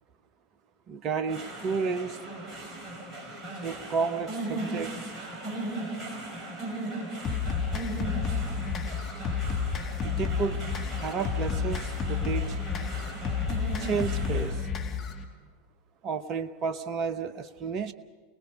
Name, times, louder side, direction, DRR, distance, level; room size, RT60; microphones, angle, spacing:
voice 1, 0.9-2.2 3.6-5.0 7.7-7.8 10.0-10.6 11.0-12.6 13.8-14.7 16.0-17.9, right 5 dB, 40° right, 12 dB, 1.0 m, -31 dB
sound 1, 1.3-14.5, right 2 dB, 20° right, 5.9 m, -38 dB
sound 2, 7.2-15.2, left 6 dB, 35° left, 2.3 m, -31 dB
27.5 x 19.5 x 5.5 m, 1.5 s
figure-of-eight pair, 85°, 0 cm